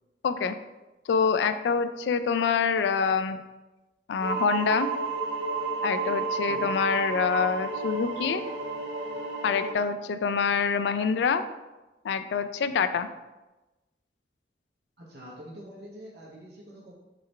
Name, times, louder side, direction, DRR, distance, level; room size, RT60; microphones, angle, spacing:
voice 1, 0.2-0.6 1.1-3.4 4.1-4.9 5.8-8.4 9.4-11.4 12.0-13.1, left 5 dB, 80° left, 11 dB, 0.3 m, -26 dB
sound 1, 4.2-9.7, right 3 dB, 80° right, 0.6 m, -31 dB
voice 2, 6.4-6.8 15.0-16.9, equal, 65° right, -4 dB, 1.3 m, -45 dB
3.8 x 3.1 x 4.4 m, 1.1 s
head